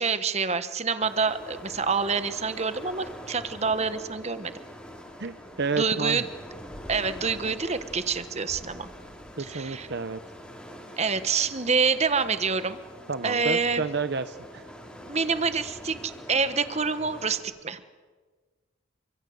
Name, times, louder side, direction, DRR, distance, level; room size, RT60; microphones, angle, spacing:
voice 1, 0.0-4.5 5.8-6.3 6.9-8.9 9.4-9.9 11.0-12.8 13.2-13.8 15.1-17.8, right 5 dB, 35° right, 12 dB, 1.2 m, -27 dB
sound 1, 1.0-17.4, equal, 5° left, 4.0 m, -44 dB
voice 2, 5.2-6.2 9.4-10.2 13.1-14.7, right 4 dB, 55° right, 11 dB, 0.8 m, -30 dB
28.5 x 25.0 x 7.9 m, 1.4 s
head